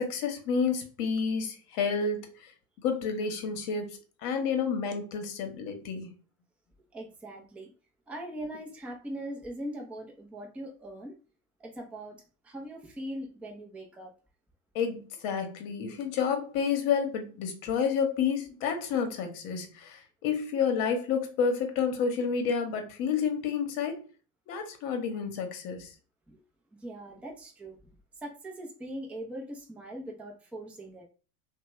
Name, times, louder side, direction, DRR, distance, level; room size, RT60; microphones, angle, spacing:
voice 1, 0.0-2.3 2.8-3.9 4.2-6.1 14.7-24.0 24.5-25.9, left 6 dB, 50° left, 1.0 m, -30 dB
voice 2, 6.9-7.7 8.1-11.2 11.6-14.1 26.3-26.4 26.7-27.9 28.2-31.0, right 1 dB, 5° right, 0.5 m, -41 dB
3.0 x 2.3 x 3.0 m
hypercardioid pair, 90°, 47 cm